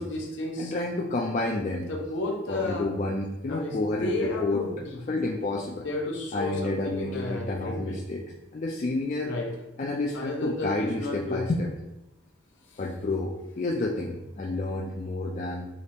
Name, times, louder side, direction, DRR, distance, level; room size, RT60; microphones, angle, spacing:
voice 1, 0.0-0.7 1.9-2.9 3.5-5.0 5.8-8.0 9.2-9.5 10.1-11.5 12.7-12.8, left 2 dB, 70° left, 1 dB, 0.7 m, -32 dB
voice 2, 0.6-1.9 2.5-4.6 5.1-5.9 6.3-9.3 9.8-11.7 12.8-15.7, left 2 dB, 40° left, -2 dB, 0.3 m, -30 dB
5.0 x 2.0 x 4.3 m, 0.92 s
head